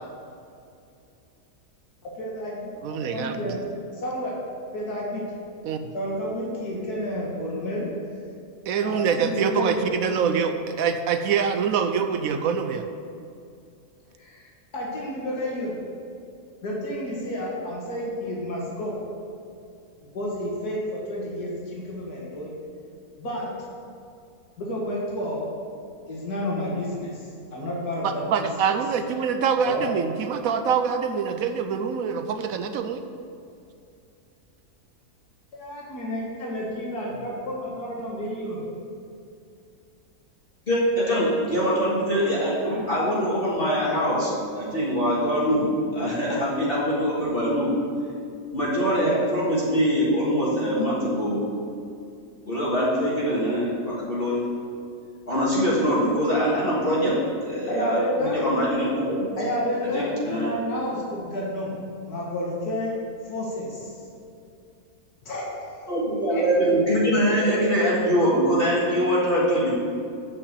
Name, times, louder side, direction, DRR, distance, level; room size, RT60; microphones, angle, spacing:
voice 1, 2.0-3.6 3.9-4.3 4.7-5.2 5.9-7.9 8.8-9.9 14.2-15.7 16.6-18.9 20.1-22.5 23.2-23.5 24.6-25.5 26.1-28.5 29.6-29.9 35.5-38.6 42.6-42.8 56.6-56.9 57.7-58.4 59.4-61.8 62.1-63.0 63.3-63.9 65.2-66.0 66.3-66.4, left 1 dB, 85° left, -4 dB, 2.2 m, -30 dB
voice 2, 2.8-3.5 5.6-5.9 8.7-12.8 28.0-33.0, right 6 dB, 70° right, 8 dB, 1.0 m, -25 dB
voice 3, 40.7-47.8 48.5-51.4 52.5-54.5 55.3-57.2 57.5-59.3 59.8-60.6 65.9-69.7, equal, 40° left, -8 dB, 2.0 m, -23 dB
8.4 x 5.9 x 8.1 m, 2.5 s
omnidirectional pair, 1.6 m